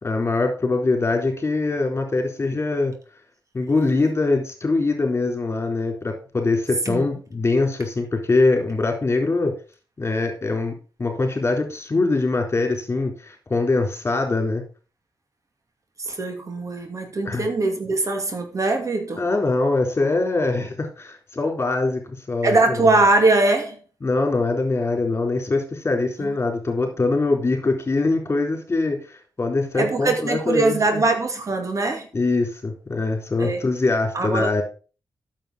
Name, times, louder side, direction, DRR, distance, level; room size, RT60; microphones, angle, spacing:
voice 1, 0.0-2.9 3.5-9.5 10.0-10.7 11.0-14.6 17.2-17.4 19.2-22.8 24.0-31.0 32.1-34.6, left 3 dB, 35° left, 3 dB, 4.0 m, -23 dB
voice 2, 16.0-19.2 22.4-23.8 26.2-26.3 29.7-32.1 33.4-33.6 34.1-34.5, right 2 dB, 45° right, 5 dB, 2.5 m, -21 dB
9.1 x 7.5 x 5.1 m, 0.36 s
cardioid pair, 65°, 7 cm